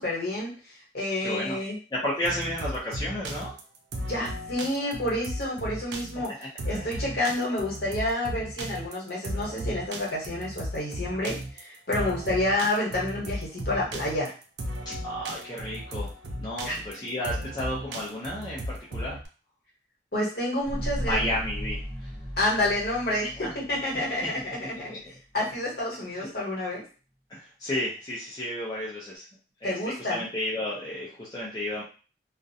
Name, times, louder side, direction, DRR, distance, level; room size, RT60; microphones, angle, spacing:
voice 1, 0.0-1.8 4.1-6.4 6.6-14.3 16.6-16.8 20.1-21.3 22.4-24.9 25.3-26.8 29.6-30.2, left 1 dB, 55° left, -4 dB, 1.0 m, -29 dB
voice 2, 1.2-1.6 1.9-3.5 6.7-7.0 11.1-11.2 11.9-12.1 14.9-16.1 16.4-19.2 21.0-22.1 23.4-23.5 24.9-25.0 26.1-26.3 27.3-29.3 29.6-31.8, left 1 dB, 20° left, -6 dB, 0.5 m, -32 dB
sound 1, 2.2-19.3, right 1 dB, 70° right, 0.4 m, -36 dB
sound 2, 20.6-25.1 25.5-25.6, equal, 25° right, 0.9 m, -36 dB
2.4 x 2.1 x 2.6 m, 0.36 s
head